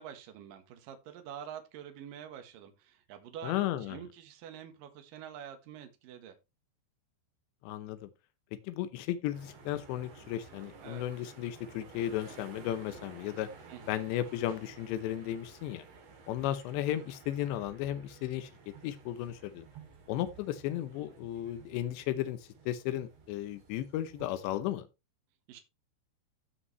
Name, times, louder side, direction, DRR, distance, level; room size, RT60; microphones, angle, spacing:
voice 1, 0.0-6.4 10.8-11.1 13.7-14.1 25.5-25.6, right 9 dB, 65° right, 2.7 m, -47 dB
voice 2, 3.4-4.0 7.6-8.1 8.6-13.5 13.9-15.8 16.3-19.7 20.1-24.9, left 12 dB, 85° left, 3.1 m, -35 dB
sound 1, 9.3-24.6, right 4 dB, 90° right, 5.3 m, -53 dB
15.5 x 5.5 x 3.3 m
omnidirectional pair, 5.0 m